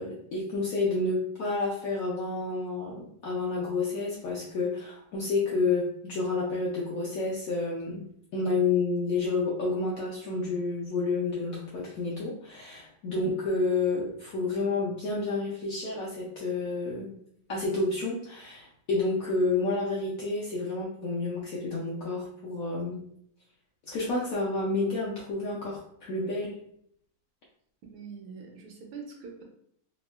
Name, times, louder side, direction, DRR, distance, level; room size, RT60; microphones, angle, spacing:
voice 1, 0.0-8.0 8.3-17.1 17.5-23.0 23.9-26.5, left 3 dB, 80° left, -5 dB, 0.7 m, -30 dB
voice 2, 27.8-29.4, right 5 dB, 85° right, 1 dB, 1.4 m, -44 dB
3.5 x 2.1 x 2.3 m, 0.68 s
omnidirectional pair, 2.1 m